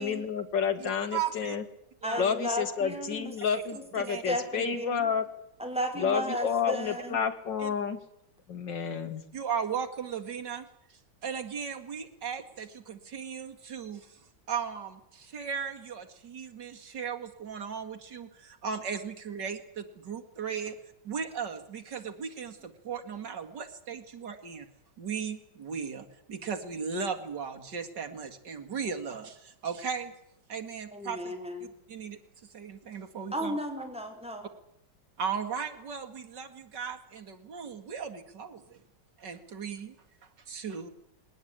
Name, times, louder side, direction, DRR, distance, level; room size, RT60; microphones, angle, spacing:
voice 1, 0.0-1.6 2.2-5.2 6.0-8.0 8.5-9.2, left 6 dB, 80° left, 8 dB, 2.6 m, -30 dB
voice 2, 0.8-1.6 2.0-2.3 4.1-4.2 4.6-4.8 7.6-7.7 9.3-10.7 11.2-14.2 14.5-20.8 21.0-24.7 25.0-30.1 30.5-31.3 31.9-32.2 32.5-33.6 35.2-38.8 39.2-40.0 40.5-40.9, right 6 dB, 70° right, 5 dB, 2.6 m, -36 dB
voice 3, 2.0-3.3 4.0-5.1 5.6-7.2 30.9-31.7 33.3-34.5, equal, 5° right, 2 dB, 4.6 m, -34 dB
21.5 x 18.0 x 8.8 m, 0.76 s
omnidirectional pair, 1.9 m